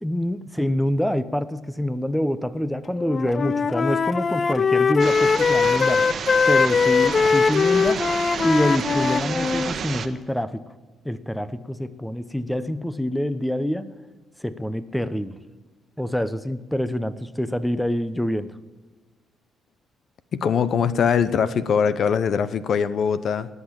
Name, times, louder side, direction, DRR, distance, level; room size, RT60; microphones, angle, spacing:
voice 1, 0.0-6.1 6.5-8.1 8.4-10.6 11.0-13.9 14.4-15.4 16.0-18.5, left 1 dB, 5° left, 14 dB, 0.8 m, -26 dB
Wind instrument woodwind instrument, 3.0-9.7, left 5 dB, 40° left, 0.4 m, -21 dB
sound 1, 5.0-10.1, right 7 dB, 55° right, 1.2 m, -31 dB
voice 2, 20.3-23.5, left 7 dB, 60° left, 14 dB, 0.8 m, -22 dB
19.5 x 8.2 x 7.3 m, 1.3 s
cardioid pair, 90°, 0 cm